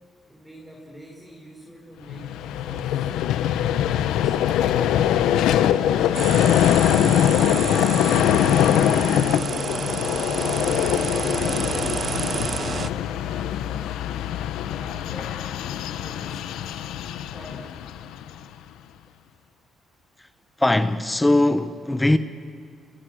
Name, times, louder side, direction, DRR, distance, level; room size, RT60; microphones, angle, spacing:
voice 1, 0.3-3.1 4.1-4.7 5.4-6.7 7.3-8.1 8.5-10.7 11.0-11.7 12.3-14.0 14.6-15.5 16.0-16.8 17.3-17.9, equal, 5° right, 5.5 m, -44 dB
Vehicle, 2.1-18.4, left 10 dB, 90° left, 0.9 m, -22 dB
sound 1, 6.1-12.9, right 6 dB, 45° right, 0.6 m, -30 dB
voice 2, 20.6-22.2, left 1 dB, 10° left, 1.0 m, -20 dB
28.5 x 28.5 x 6.4 m
cardioid pair, 90°, 0 cm